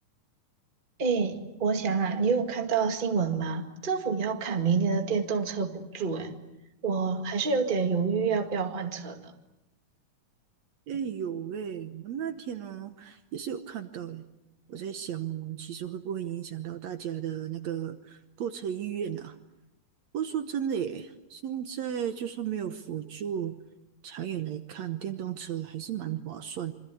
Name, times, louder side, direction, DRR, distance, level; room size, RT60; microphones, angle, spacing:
voice 1, 1.0-6.4 6.8-9.3, right 5 dB, 20° right, 5 dB, 1.6 m, -28 dB
voice 2, 10.9-14.3 14.7-19.4 20.1-23.6 24.0-26.7, right 9 dB, 65° right, 9 dB, 2.1 m, -34 dB
27.0 x 25.0 x 8.5 m, 0.94 s
omnidirectional pair, 3.7 m